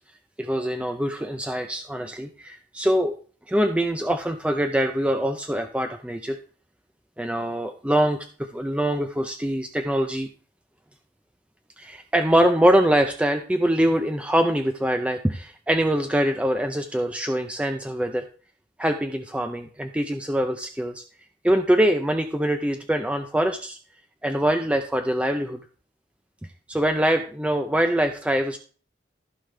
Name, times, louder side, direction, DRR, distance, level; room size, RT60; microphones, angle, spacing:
voice 1, 0.4-3.1 3.5-6.4 7.2-10.3 11.8-18.2 18.8-21.0 21.4-23.8 24.2-25.6 26.7-28.6, right 1 dB, 5° right, 6 dB, 0.5 m, -23 dB
15.0 x 5.0 x 3.3 m, 0.41 s
head